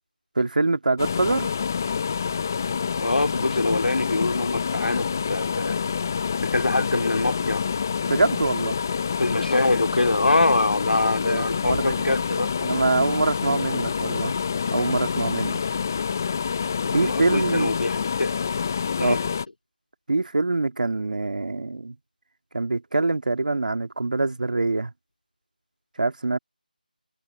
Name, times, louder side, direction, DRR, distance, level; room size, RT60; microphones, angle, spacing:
voice 1, 0.4-1.5 8.1-8.8 11.2-12.2 12.6-14.3 14.7-15.6 16.9-17.7 19.0-19.2 20.1-22.0 22.5-24.9 26.0-26.4, right 3 dB, 60° right, 2.4 m, -24 dB
sound 1, 1.0-19.5, left 6 dB, 20° left, 0.5 m, -27 dB
voice 2, 3.0-5.8 6.5-7.6 9.2-12.5 16.8-18.3 19.0-19.2, left 2 dB, 75° left, 4.0 m, -24 dB
figure-of-eight pair, 175°, 5 cm